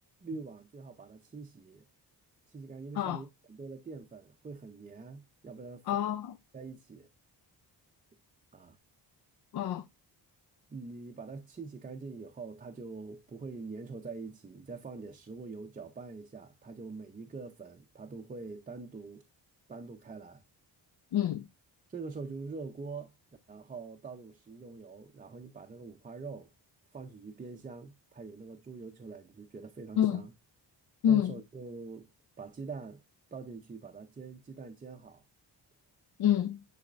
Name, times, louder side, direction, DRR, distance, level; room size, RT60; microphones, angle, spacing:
voice 1, 0.2-1.9 2.5-6.1 6.5-7.1 8.5-8.8 10.7-19.2 19.7-20.4 21.9-23.1 23.5-26.5 26.9-30.3 31.1-32.1 32.4-33.0 33.3-35.2, right 4 dB, 20° right, 0.5 m, -44 dB
voice 2, 5.9-6.3 9.5-9.8 21.1-21.4 30.0-30.2 31.0-31.3 36.2-36.6, left 10 dB, 60° left, 0.5 m, -27 dB
9.9 x 4.1 x 2.4 m
wide cardioid pair, 150°, 42 cm